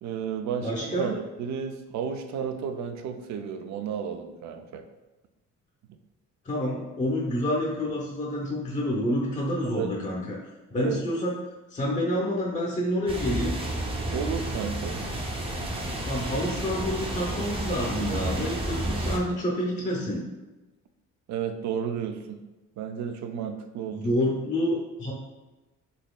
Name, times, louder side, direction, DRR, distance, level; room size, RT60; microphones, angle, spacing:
voice 1, 0.0-4.8 5.9-6.0 9.7-9.9 10.7-11.0 14.0-15.0 21.3-22.4 22.8-24.1, right 7 dB, 65° right, 6 dB, 0.5 m, -32 dB
voice 2, 0.6-1.1 6.4-10.4 10.7-11.4 11.7-13.5 16.0-20.2 23.9-25.1, left 1 dB, 25° left, -4 dB, 0.7 m, -28 dB
sound 1, 13.1-19.2, right 1 dB, 20° right, 0.6 m, -31 dB
4.1 x 2.7 x 2.3 m, 1.1 s
cardioid pair, 90°, 30 cm